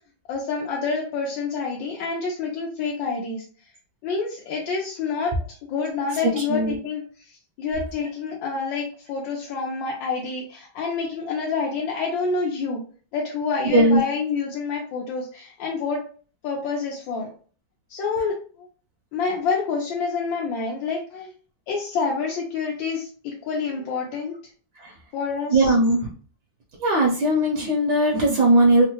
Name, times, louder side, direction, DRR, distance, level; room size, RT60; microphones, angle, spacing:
voice 1, 0.3-3.4 4.0-5.3 5.7-12.8 13.1-16.0 16.4-17.3 17.9-18.7 19.1-21.3 21.7-24.3 25.1-25.7, left 4 dB, 85° left, -2 dB, 1.3 m, -28 dB
voice 2, 6.3-6.7 13.7-14.0 24.8-24.9 25.5-26.0 26.8-28.8, right 1 dB, 70° right, -1 dB, 1.2 m, -18 dB
3.6 x 2.1 x 2.8 m, 0.41 s
omnidirectional pair, 2.1 m